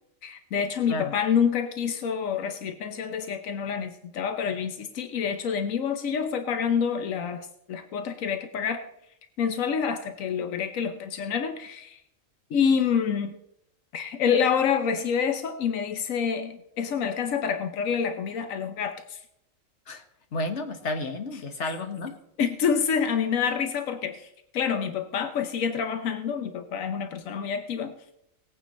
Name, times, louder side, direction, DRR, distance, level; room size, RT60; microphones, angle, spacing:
voice 1, 0.2-8.8 9.4-12.0 12.5-13.3 13.9-19.2 22.4-27.9, left 7 dB, 90° left, 8 dB, 1.2 m, -27 dB
voice 2, 20.3-22.2, left 2 dB, 60° left, 7 dB, 1.5 m, -31 dB
18.0 x 9.1 x 4.2 m, 0.78 s
omnidirectional pair, 1.3 m